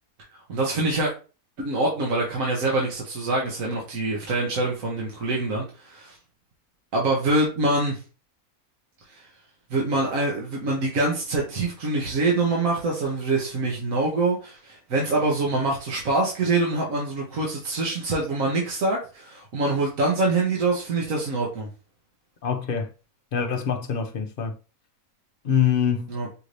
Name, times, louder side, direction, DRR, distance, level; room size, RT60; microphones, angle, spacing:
voice 1, 0.5-1.1 1.6-6.1 6.9-8.0 9.1-9.2 9.7-21.7 26.1-26.3, right 2 dB, 70° right, 1.5 m, -25 dB
voice 2, 22.4-22.9 23.3-24.5 25.4-26.1, left 7 dB, 50° left, 0.7 m, -24 dB
5.5 x 2.7 x 3.2 m
omnidirectional pair, 1.5 m